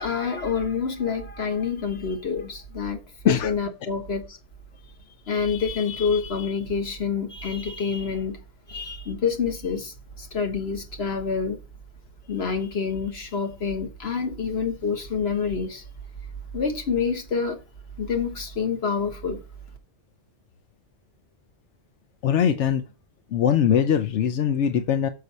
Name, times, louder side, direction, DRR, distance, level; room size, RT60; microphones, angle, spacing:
voice 1, 0.0-3.0 3.2-4.4 5.3-8.4 8.7-11.6 12.3-15.8 16.5-17.6 18.0-19.4, left 5 dB, 60° left, 1.6 m, -27 dB
voice 2, 22.2-22.8 23.3-25.1, left 8 dB, 90° left, 1.0 m, -21 dB
6.7 x 6.6 x 4.2 m
omnidirectional pair, 1.2 m